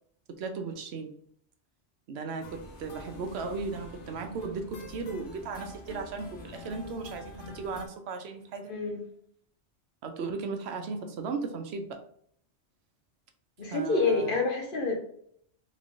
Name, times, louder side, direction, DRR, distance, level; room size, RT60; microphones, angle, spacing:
voice 1, 0.3-1.1 2.1-8.7 10.0-12.0 13.7-14.4, right 4 dB, 70° right, 6 dB, 0.8 m, -36 dB
sound 1, 2.4-7.9, left 1 dB, 90° left, 1.1 m, -46 dB
voice 2, 8.7-9.0 13.6-15.0, left 3 dB, 50° left, 1 dB, 1.1 m, -27 dB
3.7 x 3.2 x 2.6 m, 0.65 s
omnidirectional pair, 1.2 m